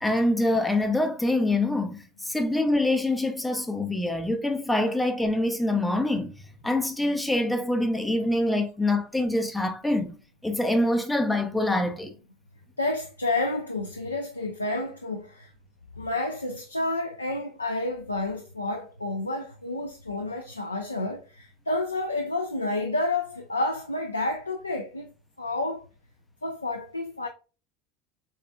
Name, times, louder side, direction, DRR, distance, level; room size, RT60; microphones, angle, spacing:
voice 1, 0.0-6.3 6.6-10.2 10.4-12.2, left 1 dB, 5° left, 0.5 m, -25 dB
voice 2, 12.8-15.5 16.0-25.1 25.4-25.9 26.4-27.3, left 2 dB, 90° left, 0.4 m, -30 dB
4.0 x 3.6 x 2.2 m
figure-of-eight pair, 70°, 0 cm